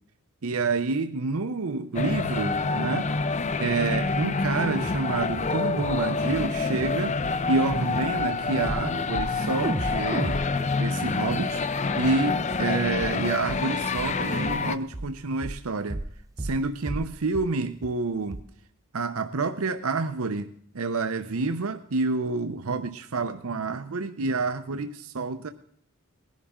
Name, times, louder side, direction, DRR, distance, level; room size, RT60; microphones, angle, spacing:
voice 1, 0.4-3.1 3.6-7.2 7.5-10.4 10.8-11.6 12.0-16.0 16.4-18.4 18.9-25.5, right 3 dB, 75° right, 0.7 m, -28 dB
sound 1, 1.9-14.8, left 4 dB, 35° left, 0.5 m, -27 dB
sound 2, 4.8-5.0 5.3-5.5 5.8-6.0 6.3-6.5 6.7-7.0 7.2-7.3 7.7-7.8 8.2-8.3 8.7-8.9 9.2-9.4 9.6-11.7 12.0-12.1 12.5-12.6 13.0-13.2 13.5-13.6 14.0-14.1 14.5-14.6 14.9-15.1 15.4-15.6 15.9-16.1 16.4-16.6 16.9-17.1 17.4-17.5 17.8-17.9 18.3-18.4, right 1 dB, 15° right, 0.4 m, -34 dB
19.5 x 11.0 x 3.7 m
head